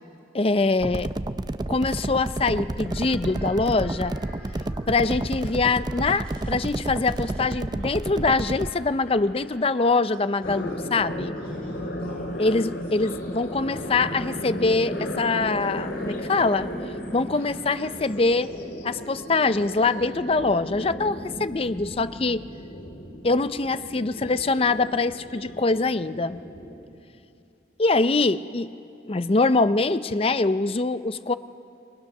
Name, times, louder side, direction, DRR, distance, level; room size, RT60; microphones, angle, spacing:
voice 1, 0.3-1.1 1.7-4.2 4.9-11.4 12.4-16.7 17.1-18.5 18.8-22.5 23.2-26.4 27.8-28.7 29.1-31.3, left 3 dB, 35° left, 13 dB, 0.5 m, -24 dB
sound 1, 0.8-8.7, right 2 dB, 25° right, 0.5 m, -30 dB
sound 2, 2.9-11.0 11.3-18.3, equal, 5° left, 7.6 m, -51 dB
sound 3, 10.4-26.8, equal, 80° left, 3.1 m, -35 dB
29.0 x 22.0 x 6.6 m, 2.7 s
head